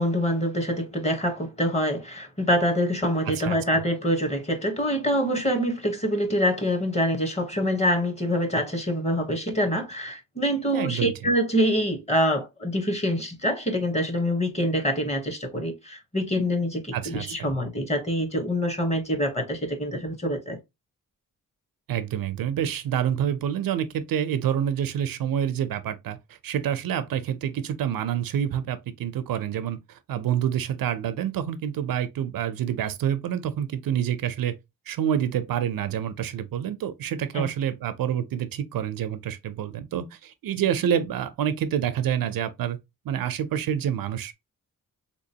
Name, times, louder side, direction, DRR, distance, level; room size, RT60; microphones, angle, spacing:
voice 1, 0.0-20.6 37.3-37.5, equal, 20° left, 0.9 m, -25 dB
voice 2, 3.3-3.6 10.7-11.1 16.9-17.5 21.9-26.2 26.4-29.8 30.1-34.5 34.9-42.8 43.1-44.3, right 9 dB, 90° right, 0.5 m, -27 dB
3.5 x 2.9 x 2.7 m
wide cardioid pair, 115°, 34 cm